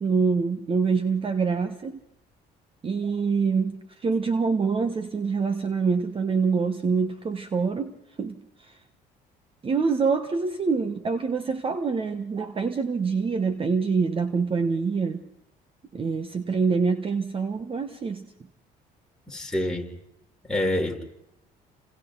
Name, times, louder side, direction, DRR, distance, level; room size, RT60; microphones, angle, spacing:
voice 1, 0.0-2.0 2.8-8.8 9.6-15.2 15.9-18.2, right 5 dB, 30° right, 1.4 m, -25 dB
voice 2, 19.3-19.9 20.5-21.0, left 1 dB, 5° left, 4.2 m, -27 dB
30.0 x 27.5 x 4.0 m
cardioid pair, 110°, 17 cm